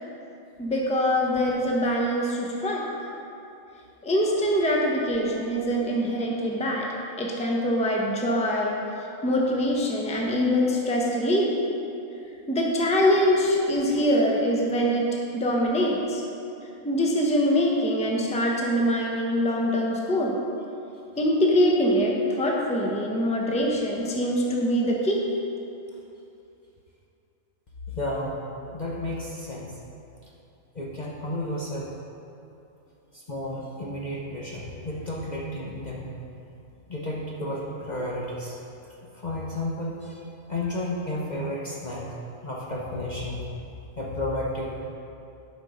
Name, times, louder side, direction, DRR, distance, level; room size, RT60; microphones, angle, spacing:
voice 1, 0.6-2.8 4.0-6.9 7.2-8.8 9.2-11.6 12.5-16.2 16.8-20.4 21.2-25.3, equal, 5° left, -2 dB, 0.8 m, -24 dB
voice 2, 27.9-28.4 28.7-29.7 30.7-31.9 33.1-36.1 36.9-38.5 39.1-40.2 40.5-42.0 42.4-43.4 44.0-44.9, left 1 dB, 35° left, -4 dB, 0.9 m, -32 dB
12.0 x 5.3 x 5.0 m, 2.7 s
omnidirectional pair, 1.4 m